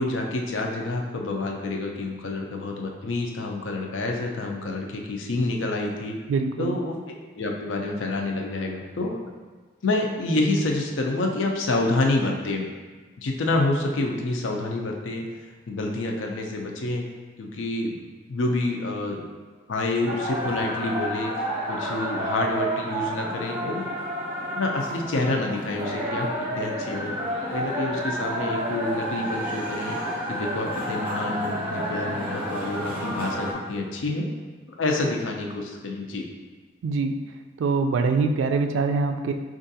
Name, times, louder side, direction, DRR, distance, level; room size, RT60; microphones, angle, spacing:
voice 1, 0.0-6.2 6.6-7.0 7.3-9.2 9.8-12.6 13.2-15.2 15.7-17.0 17.4-18.0 18.3-19.2 19.7-21.3 21.6-23.9 24.6-26.3 26.6-27.1 27.5-30.0 30.3-34.3 34.8-36.3, left 2 dB, 80° left, 1 dB, 0.5 m, -27 dB
voice 2, 6.3-6.8 36.8-37.2 37.6-39.3, right 4 dB, 80° right, 6 dB, 0.3 m, -24 dB
sound 1, 20.0-33.5, equal, 10° right, 0.7 m, -30 dB
4.5 x 2.4 x 2.7 m, 1.4 s
head